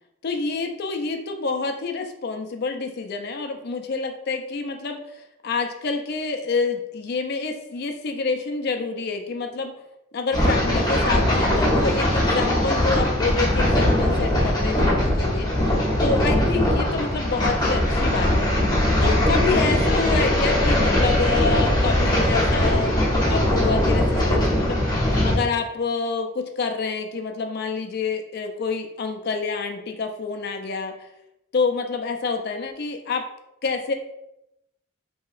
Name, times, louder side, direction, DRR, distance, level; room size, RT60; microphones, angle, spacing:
voice 1, 0.2-9.7 10.1-15.7 16.0-18.5 19.0-24.8 25.2-30.9 31.5-33.2 33.6-33.9, left 4 dB, 50° left, 5 dB, 0.3 m, -27 dB
sound 1, 10.3-25.4, left 1 dB, 20° left, 0.8 m, -20 dB
3.0 x 2.8 x 2.4 m, 0.86 s
head